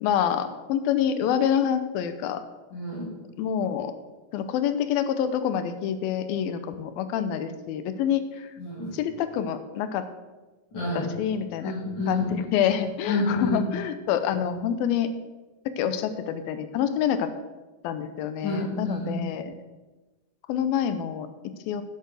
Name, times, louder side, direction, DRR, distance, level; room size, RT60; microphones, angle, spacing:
voice 1, 0.0-2.4 3.4-3.9 4.3-8.5 8.9-10.0 10.9-11.7 12.1-15.1 15.8-17.3 17.8-19.5 20.5-21.8, left 9 dB, 85° left, 10 dB, 2.5 m, -27 dB
voice 2, 2.7-3.1 8.6-8.9 10.7-11.1 11.6-12.3 13.1-13.6 18.4-19.1, left 2 dB, 35° left, -8 dB, 3.0 m, -29 dB
10.5 x 7.8 x 6.3 m, 1.2 s
omnidirectional pair, 4.3 m